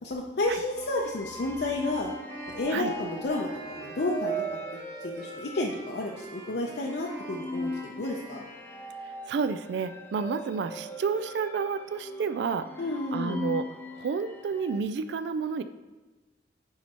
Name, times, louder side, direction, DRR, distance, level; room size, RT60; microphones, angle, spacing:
voice 1, 0.0-2.1 2.5-4.6 5.0-8.4 12.8-13.4, left 2 dB, 65° left, -1 dB, 0.6 m, -31 dB
sound 1, 0.8-14.8, right 1 dB, 10° left, 0.4 m, -40 dB
Wind instrument woodwind instrument, 1.3-9.5, right 1 dB, 85° right, 1.5 m, -46 dB
voice 2, 9.3-12.7 13.1-13.6 14.0-15.6, right 5 dB, 70° right, 11 dB, 0.3 m, -30 dB
9.5 x 4.3 x 2.9 m, 1.2 s
head